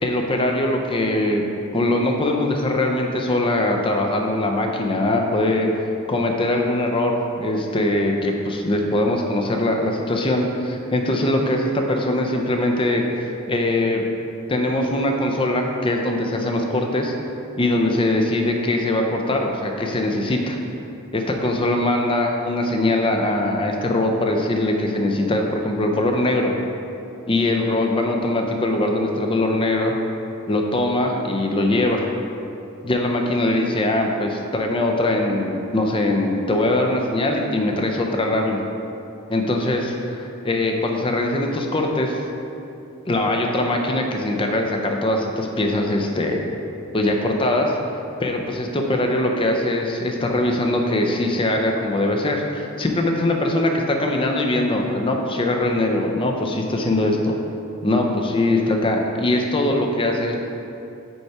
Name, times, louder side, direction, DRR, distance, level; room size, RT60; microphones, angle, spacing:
voice 1, 0.0-1.4 1.7-5.7 6.1-13.0 13.5-14.1 14.5-17.1 17.6-20.6 21.1-26.5 27.3-29.9 30.5-32.1 32.8-38.6 39.3-42.2 43.1-46.4 46.9-47.7 48.2-57.4 57.8-60.4, left 1 dB, 25° left, 2 dB, 0.5 m, -21 dB
5.3 x 4.5 x 4.7 m, 2.7 s
head